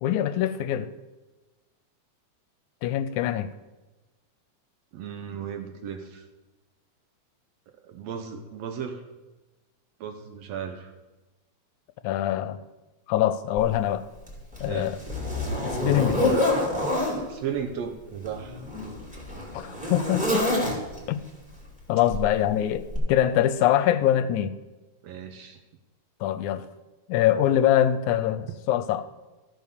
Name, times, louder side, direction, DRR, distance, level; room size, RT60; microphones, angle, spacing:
voice 1, 0.0-0.9 2.8-3.5 12.0-12.6 13.1-14.1 14.6-15.0 15.6-16.4 19.5-20.5 21.1-21.2 21.9-24.5 26.2-26.7 27.1-29.1, left 11 dB, 85° left, 13 dB, 2.0 m, -24 dB
voice 2, 4.9-6.3 7.8-9.0 10.0-10.9 14.7-14.9 17.3-18.6 25.0-25.6, right 7 dB, 75° right, 6 dB, 1.7 m, -35 dB
Zipper (clothing), 13.6-13.7 14.3-17.2 18.2-21.1 22.1-22.3 22.9-23.0, left 1 dB, 5° right, 1.9 m, -27 dB
13.5 x 5.2 x 6.6 m, 1.1 s
omnidirectional pair, 3.5 m